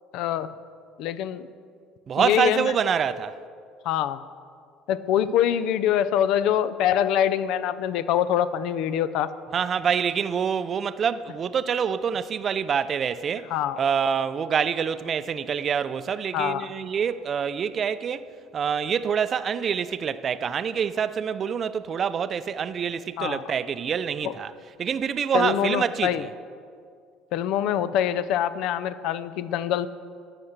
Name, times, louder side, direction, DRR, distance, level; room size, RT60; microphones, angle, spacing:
voice 1, 0.1-0.5 1.0-1.5 2.2-2.7 3.9-4.2 4.9-9.3 13.5-13.8 16.3-16.6 23.2-23.4 24.2-24.3 25.3-26.3 27.3-29.9, left 10 dB, 70° left, 0.4 m, -24 dB
voice 2, 2.1-3.4 9.5-13.5 13.8-24.5 24.8-26.3, right 7 dB, 40° right, 0.4 m, -26 dB
13.0 x 5.8 x 6.6 m
supercardioid pair, 100°, 0 cm